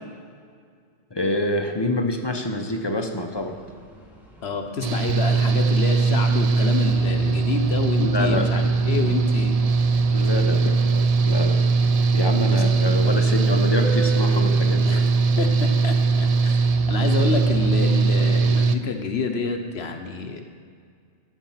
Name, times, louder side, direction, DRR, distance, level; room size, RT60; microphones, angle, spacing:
voice 1, 1.1-3.6 7.9-9.2 10.1-11.6 12.1-15.0, left 1 dB, 25° left, 4 dB, 0.8 m, -27 dB
sound 1, 3.3-14.6, right 5 dB, ahead, 1.7 m, -41 dB
voice 2, 4.4-9.6 12.3-12.6 14.8-15.0 15.4-16.6 16.9-20.4, left 4 dB, 70° left, 5 dB, 1.2 m, -28 dB
Engine / Mechanical fan, 4.8-18.7, right 4 dB, 50° right, 0.4 m, -20 dB
13.5 x 7.1 x 5.7 m, 2.1 s
omnidirectional pair, 1.1 m